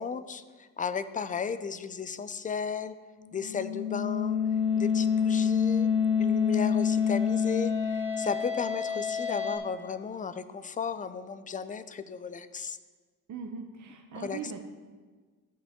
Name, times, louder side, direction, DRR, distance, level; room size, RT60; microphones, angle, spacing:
voice 1, 0.0-2.9 3.3-4.4 4.8-5.9 6.2-12.8 14.1-14.4, left 6 dB, 25° left, 13 dB, 0.3 m, -35 dB
sound 1, 3.3-9.6, left 6 dB, 90° left, 1.4 m, -27 dB
voice 2, 13.3-14.6, right 5 dB, 55° right, 3 dB, 0.8 m, -40 dB
13.5 x 5.2 x 3.6 m, 1.4 s
cardioid pair, 115°, 36 cm